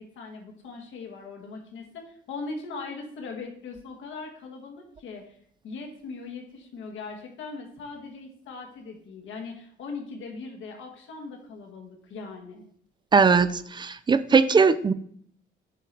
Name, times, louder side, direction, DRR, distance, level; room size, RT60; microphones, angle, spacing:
voice 1, 0.0-5.4 5.6-12.6, left 4 dB, 80° left, 2 dB, 1.4 m, -40 dB
voice 2, 13.1-14.9, right 5 dB, 25° right, 14 dB, 0.3 m, -20 dB
7.5 x 3.2 x 3.9 m, 0.63 s
cardioid pair, 90°, 20 cm